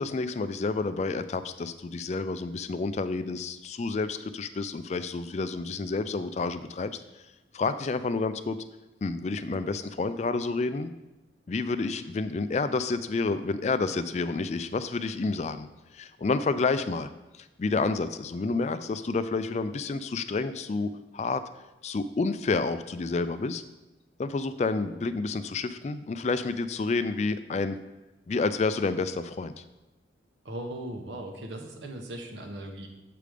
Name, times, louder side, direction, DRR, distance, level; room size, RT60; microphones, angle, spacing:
voice 1, 0.0-7.0 7.5-8.6 9.0-10.9 11.5-15.7 15.9-21.4 21.8-23.6 24.2-27.8 28.3-29.6, left 3 dB, 35° left, 12 dB, 0.3 m, -29 dB
voice 2, 30.4-32.9, right 1 dB, 80° right, 4 dB, 1.1 m, -38 dB
7.7 x 5.0 x 5.0 m, 1.0 s
head